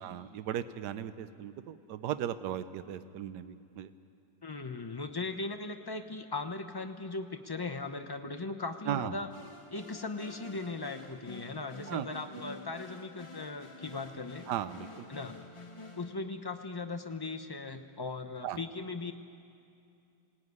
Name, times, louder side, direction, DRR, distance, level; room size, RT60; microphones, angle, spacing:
voice 1, 0.0-3.9 8.9-9.1 11.9-12.1 14.5-15.1 18.4-18.6, right 10 dB, 75° right, 12 dB, 1.3 m, -36 dB
voice 2, 4.4-9.3 9.7-14.4 15.1-15.4 16.0-19.1, left 3 dB, 35° left, 6 dB, 0.3 m, -38 dB
sound 1, 9.3-16.1, left 2 dB, 20° left, 1.3 m, -49 dB
21.5 x 18.5 x 9.5 m, 2.6 s
omnidirectional pair, 1.9 m